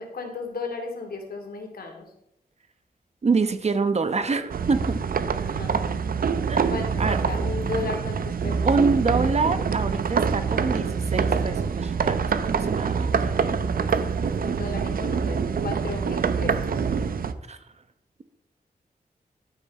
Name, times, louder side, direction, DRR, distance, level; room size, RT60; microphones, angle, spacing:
voice 1, 0.0-2.0 5.4-5.9 6.7-8.9 13.8-13.9 14.4-16.8, left 4 dB, 75° left, 3 dB, 2.7 m, -35 dB
voice 2, 3.2-5.0 6.5-6.7 7.0-7.2 8.6-13.3 17.5-17.6, right 4 dB, 45° right, 10 dB, 1.0 m, -26 dB
sound 1, 4.5-17.3, right 6 dB, 65° right, 0.7 m, -25 dB
12.0 x 9.2 x 4.2 m, 0.80 s
wide cardioid pair, 115°, 16 cm